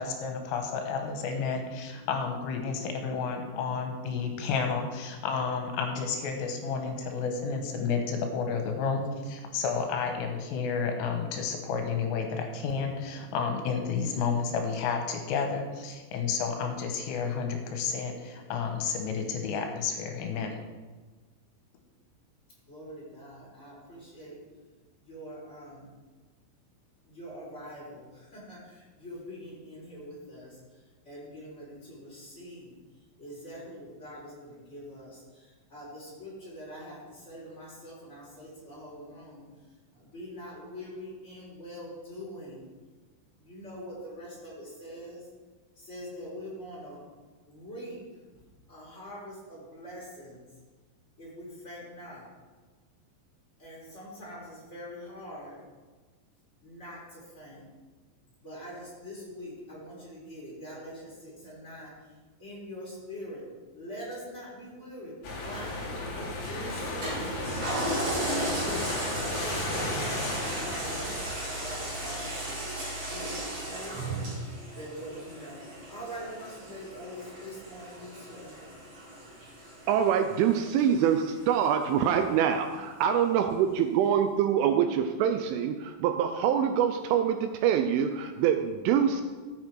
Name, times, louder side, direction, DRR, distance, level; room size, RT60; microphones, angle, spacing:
voice 1, 0.0-20.6, left 5 dB, 80° left, 4 dB, 3.6 m, -31 dB
voice 2, 22.7-24.4 25.0-25.9 27.1-30.6 31.0-32.7 33.2-39.4 39.9-42.7 43.4-45.2 45.8-47.0 47.5-48.0 48.7-50.4 51.2-52.3 53.6-55.6 56.6-57.6 58.4-61.9 62.4-63.5 63.7-65.7 66.0-67.6 68.3-72.6 73.0-74.3 74.7-75.6 75.9-78.6, equal, 15° left, -6 dB, 4.0 m, -44 dB
sound 1, 65.2-73.4, left 2 dB, 45° left, 2.8 m, -35 dB
Toilet flush, 67.0-81.8 82.3-82.4, right 1 dB, 30° right, 4.6 m, -36 dB
voice 3, 79.9-89.2, right 8 dB, 80° right, 7 dB, 2.9 m, -25 dB
14.0 x 8.9 x 4.7 m, 1.4 s
omnidirectional pair, 5.9 m